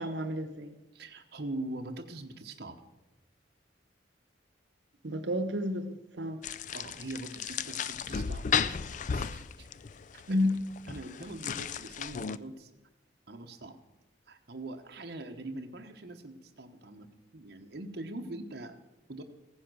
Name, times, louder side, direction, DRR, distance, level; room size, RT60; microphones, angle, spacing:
voice 1, 0.0-0.7 5.0-6.4 10.3-10.5, left 1 dB, 80° right, 9 dB, 1.0 m, -31 dB
voice 2, 0.9-2.8 6.7-9.7 10.1-10.4 10.9-12.7 13.3-13.8 14.3-17.1 17.3-18.8 19.1-19.2, right 2 dB, 60° right, 3 dB, 1.0 m, -42 dB
sound 1, 6.4-12.4, left 6 dB, 45° left, 0.4 m, -35 dB
15.5 x 10.0 x 6.2 m, 1.0 s
head